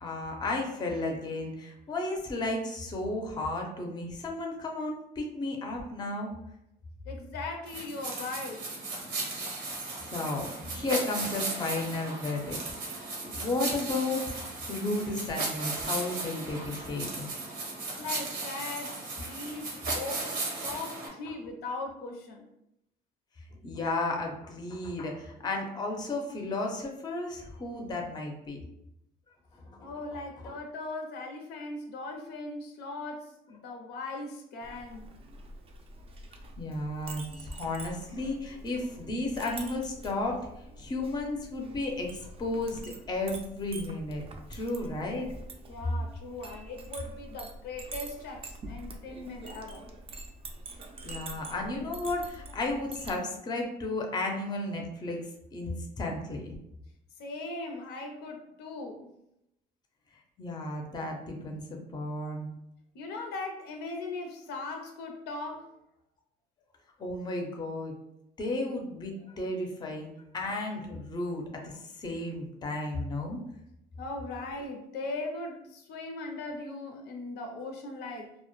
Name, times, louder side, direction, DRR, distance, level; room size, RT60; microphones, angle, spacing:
voice 1, 0.0-6.3 10.1-17.2 23.6-28.6 29.7-29.9 36.6-40.5 40.8-44.2 44.5-45.3 51.0-55.2 55.5-56.5 60.4-62.5 67.0-68.0 68.4-70.1 70.3-73.4, left 2 dB, 25° left, 1 dB, 0.5 m, -33 dB
voice 2, 7.1-8.7 18.0-22.4 29.8-35.1 45.7-49.8 57.2-59.0 62.9-65.7 74.0-78.3, left 2 dB, 80° left, 3 dB, 0.5 m, -39 dB
sound 1, 7.7-21.1, right 3 dB, 90° right, 0.8 m, -36 dB
Chink clink, 34.6-53.2, right 2 dB, 35° right, 0.4 m, -45 dB
2.0 x 2.0 x 2.9 m, 0.81 s
cardioid pair, 110°, 17 cm